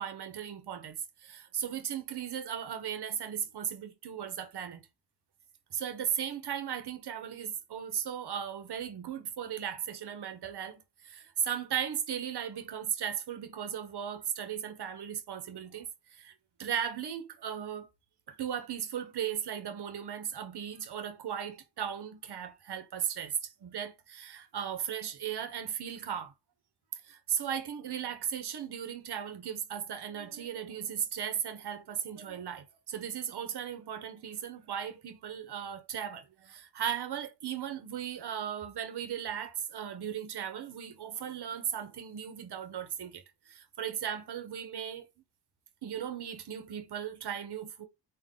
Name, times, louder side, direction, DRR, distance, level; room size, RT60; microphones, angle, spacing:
voice 1, 0.0-4.8 5.7-16.3 16.6-17.9 18.3-26.3 26.9-45.0 45.8-47.9, right 9 dB, 70° right, 0.9 m, -37 dB
3.7 x 2.4 x 3.7 m
cardioid pair, 75°, 42 cm